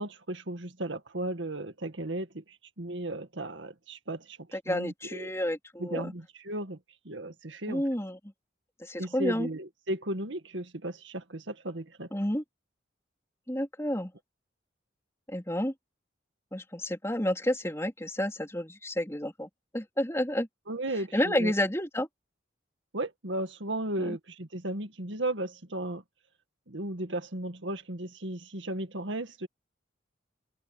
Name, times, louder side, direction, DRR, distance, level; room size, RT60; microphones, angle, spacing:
voice 1, 0.0-2.4 2.8-4.4 4.7-5.3 5.8-6.8 7.1-7.8 9.0-12.1 20.7-21.5 22.9-26.0 26.7-29.5, right 1 dB, 75° right, 2.0 m, -35 dB
voice 2, 4.7-6.1 7.7-8.2 8.8-9.5 12.1-12.4 13.5-14.1 15.3-15.7 16.5-20.5 21.1-22.1 24.1-24.2, left 1 dB, 15° left, 3.7 m, -30 dB
open air
head